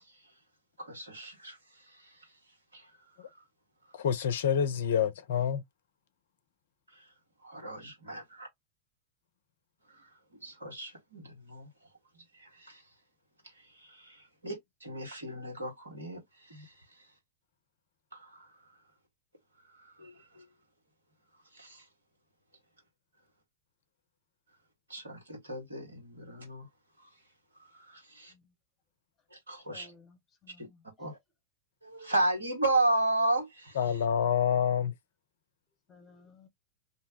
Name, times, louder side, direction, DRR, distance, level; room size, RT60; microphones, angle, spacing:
voice 1, 0.8-2.3 2.7-2.9 3.3-3.4 6.9-7.1 7.4-8.5 9.9-10.1 10.4-11.7 12.3-12.8 13.6-17.1 18.1-18.5 19.7-20.4 21.5-21.8 24.9-26.7 27.7-28.3 29.3-29.9 30.6-30.7 31.0-31.2 31.8-34.0, right 2 dB, 75° right, 1.5 m, -34 dB
voice 2, 3.9-5.6 33.8-34.9, left 8 dB, 60° left, 0.5 m, -27 dB
voice 3, 29.7-31.1 35.9-36.5, left 4 dB, 20° left, 1.1 m, -58 dB
2.7 x 2.1 x 3.9 m
figure-of-eight pair, 90°, 0 cm